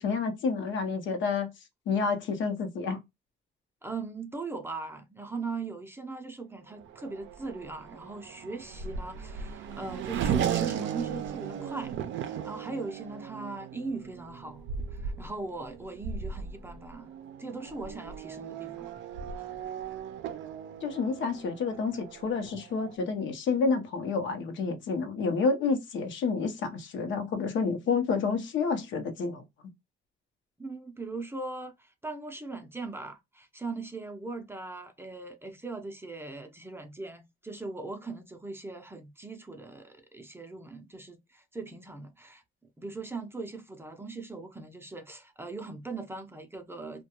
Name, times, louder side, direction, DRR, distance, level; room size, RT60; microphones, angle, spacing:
voice 1, 0.0-1.5 1.9-3.0 20.8-29.4, left 4 dB, 70° left, 0.7 m, -29 dB
voice 2, 3.8-17.1 17.4-18.9 19.2-19.3 30.6-42.4 42.8-47.0, right 3 dB, 10° right, 0.5 m, -40 dB
Race car auto racing / Accelerating revving vroom, 6.8-23.0, right 8 dB, 70° right, 0.4 m, -36 dB
2.2 x 2.2 x 2.8 m
cardioid pair, 90°, 20 cm